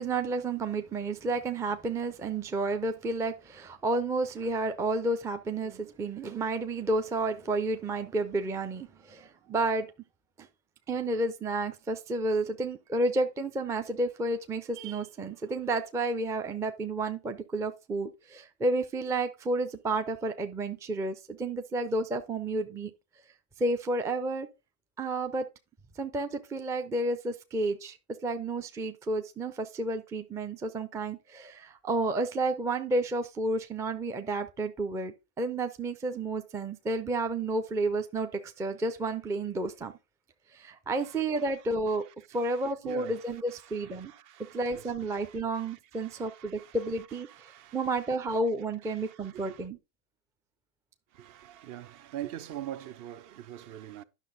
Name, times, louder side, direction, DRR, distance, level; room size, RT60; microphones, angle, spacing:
voice 1, 0.0-9.9 10.4-10.5 10.9-22.9 23.6-24.5 25.0-25.5 26.0-28.0 28.2-39.9 40.5-42.0 42.3-44.1 44.5-47.3 47.7-49.8, right 2 dB, 5° right, 0.4 m, -31 dB
voice 2, 41.0-41.5 41.9-48.4 48.8-49.6 51.1-54.0, right 12 dB, 45° right, 0.8 m, -45 dB
9.8 x 6.0 x 3.9 m
supercardioid pair, 120°, 44 cm